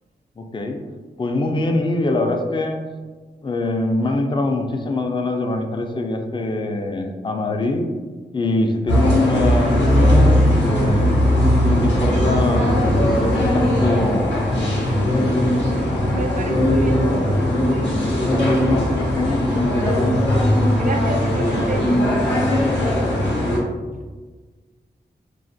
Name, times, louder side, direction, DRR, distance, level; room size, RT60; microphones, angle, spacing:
voice 1, 0.4-0.8 1.2-2.8 3.4-7.9 8.3-11.2 11.6-12.8 13.2-15.3 18.3-20.1, left 2 dB, 30° left, 4 dB, 0.3 m, -23 dB
sound 1, 8.9-23.6, equal, 90° left, 0.6 m, -18 dB
voice 2, 16.1-17.1 20.7-21.9, right 3 dB, 50° right, 4 dB, 0.4 m, -29 dB
2.4 x 2.1 x 2.5 m, 1.3 s
cardioid pair, 45°, 18 cm